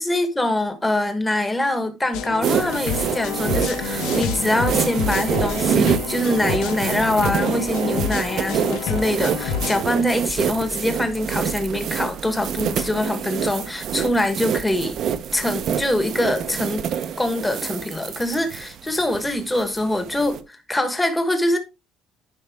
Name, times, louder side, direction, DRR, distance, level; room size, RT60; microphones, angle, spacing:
voice 1, 0.0-15.0 15.3-16.9 17.2-21.6, left 1 dB, 10° left, 1.4 m, -24 dB
sound 1, 2.1-9.8, left 7 dB, 75° left, 1.3 m, -28 dB
sound 2, 2.4-20.4, right 8 dB, 45° right, 0.9 m, -26 dB
11.0 x 5.5 x 3.5 m
cardioid pair, 150°, 0 cm